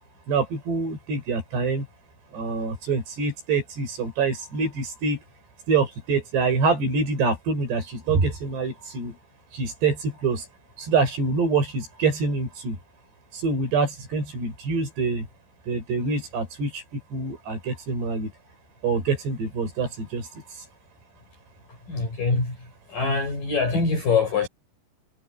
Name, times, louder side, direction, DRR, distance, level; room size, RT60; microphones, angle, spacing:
voice 1, 0.3-1.9 2.3-5.2 5.7-9.2 9.5-10.5 10.8-12.8 13.3-15.3 15.7-18.3 18.8-20.4, right 4 dB, 70° right, 8.9 m, -25 dB
voice 2, 21.9-22.5 22.9-24.5, left 4 dB, 50° left, 9.2 m, -23 dB
omnidirectional pair, 5.1 m